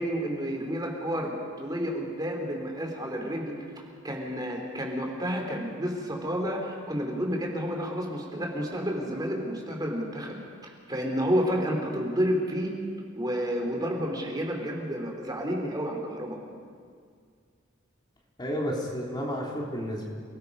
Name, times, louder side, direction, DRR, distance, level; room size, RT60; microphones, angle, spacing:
voice 1, 0.0-3.5 4.0-12.7 13.1-16.4, equal, 20° right, 1 dB, 3.4 m, -30 dB
voice 2, 18.4-20.1, equal, 20° left, -2 dB, 3.1 m, -31 dB
28.5 x 19.5 x 5.5 m, 2.1 s
head